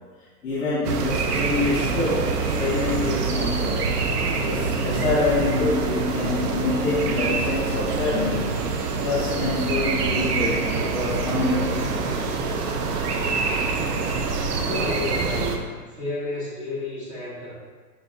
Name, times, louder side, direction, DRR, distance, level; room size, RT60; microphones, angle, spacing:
voice 1, 0.4-3.8 4.2-8.5 9.0-12.0, left 2 dB, 20° left, -10 dB, 1.0 m, -26 dB
sound 1, 0.8-15.6, right 4 dB, 70° right, 0.6 m, -25 dB
voice 2, 14.6-17.5, left 2 dB, 20° right, -7 dB, 0.5 m, -31 dB
5.4 x 2.3 x 2.6 m, 1.5 s
hypercardioid pair, 155°, 48 cm